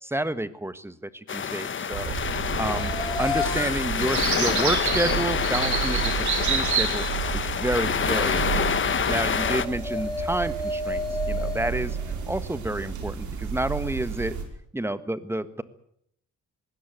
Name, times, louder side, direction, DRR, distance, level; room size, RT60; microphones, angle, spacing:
voice 1, 0.0-2.1 2.6-7.0 7.3-12.0 12.3-14.4 14.7-15.6, right 1 dB, 10° right, 13 dB, 1.5 m, -30 dB
sound 1, 1.3-9.7, left 7 dB, 40° left, 1.3 m, -27 dB
sound 2, 1.9-14.4, right 7 dB, 75° right, 5.2 m, -30 dB
sound 3, 2.6-12.8, left 3 dB, 15° left, 4.3 m, -35 dB
21.0 x 17.0 x 9.3 m, 0.72 s
cardioid pair, 90°, 30 cm